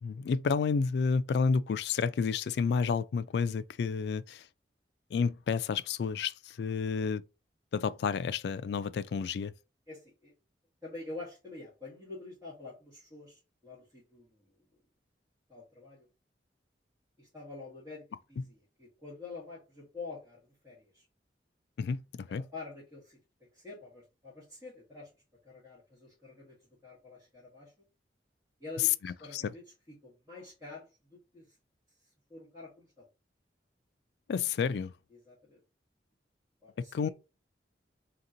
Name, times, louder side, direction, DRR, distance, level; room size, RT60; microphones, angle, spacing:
voice 1, 0.0-4.5 5.1-7.2 7.7-9.5 21.8-22.5 29.0-29.5 34.3-34.9 36.8-37.1, left 5 dB, 65° left, 0.3 m, -30 dB
voice 2, 9.9-10.3 10.8-14.5 15.5-16.1 17.2-18.0 18.3-21.0 22.3-25.1 25.4-27.7 28.6-31.6 32.0-33.1 35.1-35.6 36.6-37.1, left 3 dB, 15° right, 1.9 m, -47 dB
3.6 x 2.9 x 3.8 m
head